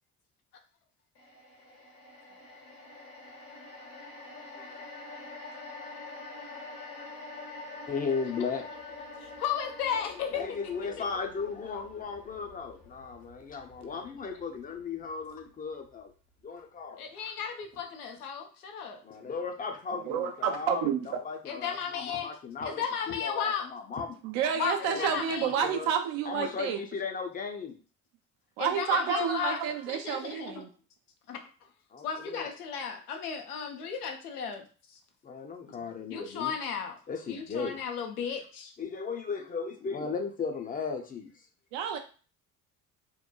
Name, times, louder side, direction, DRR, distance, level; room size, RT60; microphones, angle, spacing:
sound 1, 1.1-15.5 15.8-16.0, left 3 dB, 65° left, 1.0 m, -46 dB
voice 1, 7.9-8.6 10.3-16.1 16.4-17.1 19.0-24.2 24.9-25.1 25.4-25.9 26.3-27.8 31.9-32.5 35.2-36.5 37.1-37.8 38.8-41.3, left 5 dB, 20° left, 3 dB, 0.5 m, -36 dB
voice 2, 9.2-10.4 17.0-19.0 21.5-22.3 22.6-23.7 24.6-25.5 28.6-29.6 29.9-30.6 31.3-31.4 32.0-34.6 35.7-37.0 37.3-38.7, left 7 dB, 85° left, 4 dB, 0.5 m, -34 dB
voice 3, 19.9-21.2 24.2-26.8 28.6-30.7 34.4-34.5 41.7-42.0, right 8 dB, 60° right, 5 dB, 0.6 m, -30 dB
3.0 x 2.1 x 2.2 m, 0.38 s
figure-of-eight pair, 55°, 44 cm